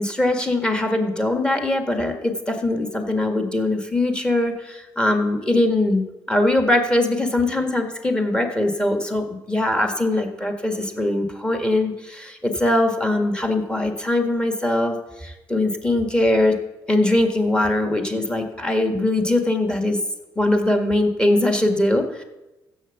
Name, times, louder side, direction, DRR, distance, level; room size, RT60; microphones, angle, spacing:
voice 1, 0.0-16.6 16.9-20.0 20.4-22.2, left 1 dB, 10° left, 4 dB, 1.7 m, -21 dB
15.0 x 8.0 x 7.1 m, 1.0 s
cardioid pair, 155°, 8 cm